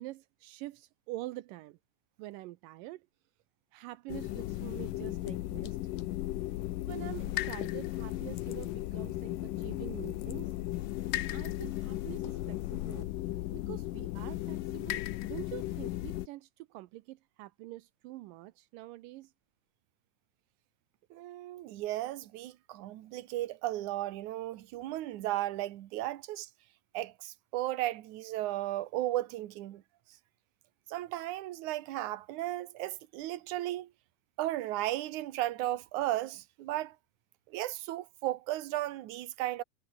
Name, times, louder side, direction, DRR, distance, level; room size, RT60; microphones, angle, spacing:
voice 1, 0.0-1.8 2.2-3.0 3.7-5.8 6.9-10.5 11.0-13.1 13.5-19.3, right 18 dB, 85° right, 2.3 m, -46 dB
sound 1, 4.1-16.3, left 16 dB, 75° left, 2.5 m, -36 dB
voice 2, 21.1-26.5 26.9-29.8 30.9-33.9 34.4-37.0 37.5-39.6, right 15 dB, 65° right, 2.4 m, -35 dB
omnidirectional pair, 4.0 m